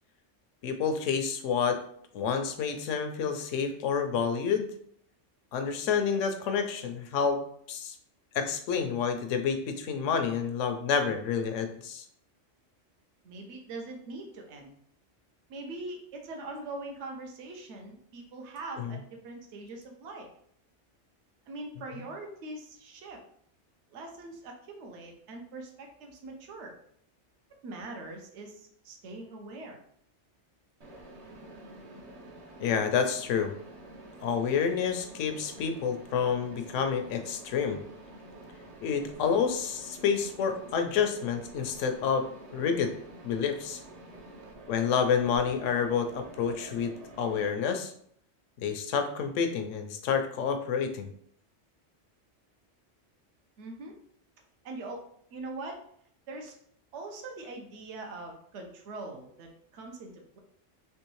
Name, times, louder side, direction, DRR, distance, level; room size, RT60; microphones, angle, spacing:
voice 1, 0.6-1.8 2.1-4.7 5.5-7.4 7.7-7.9 8.3-12.0 18.8-18.9 32.6-33.5 34.2-37.8 38.8-42.3 42.5-42.9 43.2-43.8 44.7-47.9 48.6-51.1, left 6 dB, 85° left, 7 dB, 0.9 m, -29 dB
voice 2, 13.2-14.7 15.5-20.3 21.5-23.2 23.9-26.7 27.6-29.8 53.6-53.9 54.6-55.0 55.3-55.8 56.3-56.6 56.9-60.4, right 2 dB, 70° right, 2 dB, 1.0 m, -42 dB
Mechanisms, 30.8-47.5, right 1 dB, 45° right, 0.5 m, -48 dB
3.4 x 3.0 x 3.1 m, 0.65 s
omnidirectional pair, 1.3 m